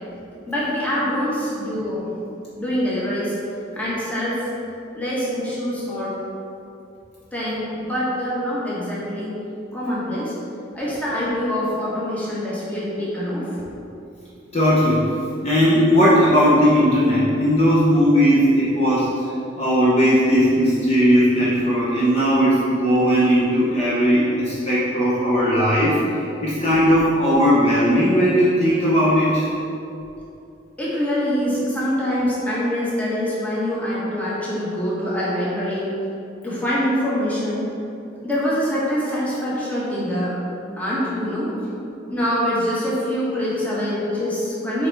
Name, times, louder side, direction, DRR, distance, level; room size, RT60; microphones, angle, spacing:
voice 1, 0.4-2.1 2.6-3.3 3.7-4.5 4.9-6.2 7.3-9.3 9.7-10.3 10.7-13.7 30.8-35.9 36.4-37.7 38.2-40.4 40.8-41.5 42.1-44.9, equal, 10° left, -8 dB, 1.3 m, -24 dB
voice 2, 14.5-15.0 15.4-19.2 19.6-29.5, equal, 30° left, -8 dB, 0.9 m, -17 dB
6.9 x 3.5 x 4.7 m, 2.7 s
head